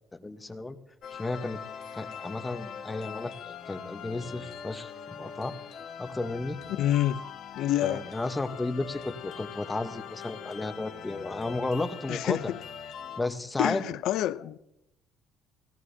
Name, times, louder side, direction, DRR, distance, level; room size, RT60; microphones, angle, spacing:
voice 1, 0.1-0.8 1.1-1.6 1.9-5.5 6.0-6.6 7.8-12.5 13.2-13.8, left 2 dB, 15° left, 0.9 m, -33 dB
sound 1, 1.0-13.2, left 7 dB, 55° left, 1.4 m, -42 dB
voice 2, 6.8-7.2 7.6-8.1 12.1-12.6 13.6-14.6, left 13 dB, 75° left, 0.4 m, -27 dB
19.5 x 17.5 x 2.7 m
cardioid pair, 135°, 0 cm